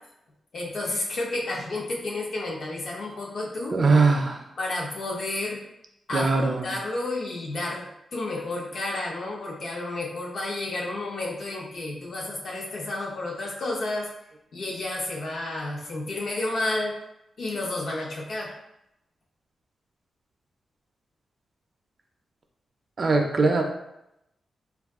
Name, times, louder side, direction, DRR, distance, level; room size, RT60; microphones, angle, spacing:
voice 1, 0.5-3.8 4.6-5.6 6.1-7.9 8.1-14.1 14.5-16.9 17.4-18.5, left 2 dB, 60° left, -1 dB, 0.7 m, -31 dB
voice 2, 3.7-4.4 6.1-6.7 23.0-23.6, right 3 dB, 40° right, 2 dB, 0.4 m, -21 dB
2.4 x 2.3 x 3.5 m, 0.84 s
wide cardioid pair, 125°, 0 cm